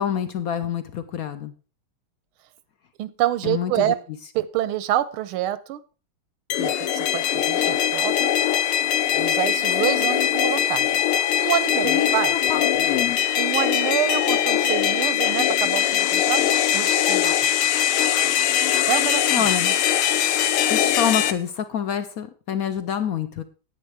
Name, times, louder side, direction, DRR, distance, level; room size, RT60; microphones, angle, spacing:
voice 1, 0.0-1.5 3.4-3.9 11.8-13.2 19.3-19.7 20.7-23.4, left 8 dB, 70° left, 11 dB, 0.8 m, -27 dB
voice 2, 3.0-4.0 4.3-5.8 6.6-8.3 9.1-10.9 11.4-12.3 13.4-16.4 16.7-17.5 18.9-19.5, right 12 dB, 90° right, 15 dB, 1.6 m, -27 dB
sound 1, 6.5-21.3, left 10 dB, 85° left, 1.8 m, -21 dB
10.0 x 8.2 x 4.7 m, 0.36 s
omnidirectional pair, 2.3 m